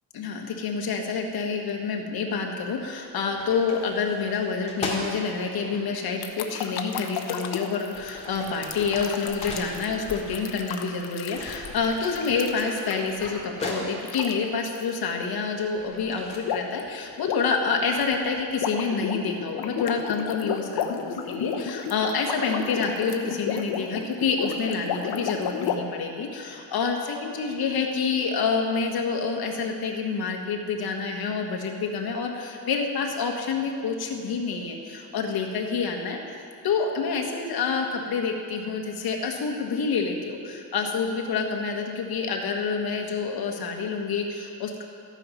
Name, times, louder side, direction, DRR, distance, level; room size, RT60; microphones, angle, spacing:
voice 1, 0.1-36.2 36.6-44.8, left 5 dB, 70° left, 2 dB, 1.7 m, -28 dB
sound 1, 2.6-2.9 3.2-5.8 7.0-7.1 7.7-11.0 11.3-14.3 14.9-16.4, left 2 dB, 15° left, 2.4 m, -38 dB
sound 2, 6.2-13.2 14.0-14.3 14.6-14.8 16.4-16.8 17.1-25.8, left 8 dB, 85° left, 1.0 m, -33 dB
14.5 x 9.0 x 5.8 m, 2.7 s
cardioid pair, 150°, 38 cm